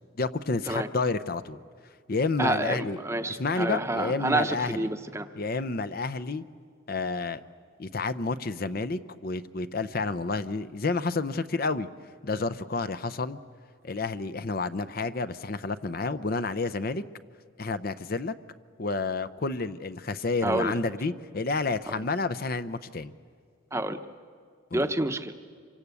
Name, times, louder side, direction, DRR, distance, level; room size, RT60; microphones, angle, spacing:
voice 1, 0.2-1.6 2.1-3.0 3.3-4.9 5.4-6.4 6.9-7.4 7.8-11.9 12.2-13.4 13.8-17.0 17.6-18.3 18.8-23.1 24.7-24.9, left 3 dB, 45° left, 12 dB, 0.6 m, -30 dB
voice 2, 2.4-5.3 20.4-20.8 23.7-24.0 24.7-25.3, right 1 dB, 15° right, 8 dB, 0.8 m, -28 dB
27.0 x 24.5 x 8.3 m, 2.1 s
head